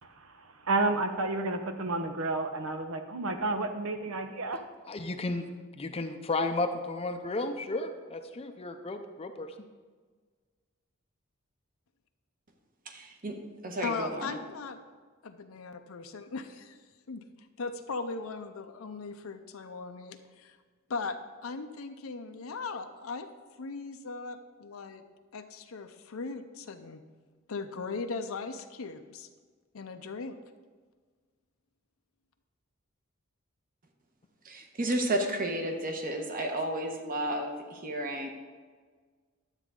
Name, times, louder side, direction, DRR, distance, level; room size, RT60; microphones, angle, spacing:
voice 1, 0.0-4.6, right 2 dB, 90° right, 7 dB, 0.9 m, -31 dB
voice 2, 4.9-9.5, left 2 dB, 30° left, 7 dB, 0.5 m, -33 dB
voice 3, 12.9-13.4 13.6-14.4 34.4-38.3, right 1 dB, 40° right, 3 dB, 1.1 m, -32 dB
voice 4, 13.8-14.8 15.2-16.8 17.1-17.2 17.6-20.6 20.9-23.3 23.6-25.0 25.3-27.0 27.5-29.3 29.7-30.4, left 4 dB, 80° left, 7 dB, 0.6 m, -38 dB
11.5 x 8.1 x 3.7 m, 1.5 s
head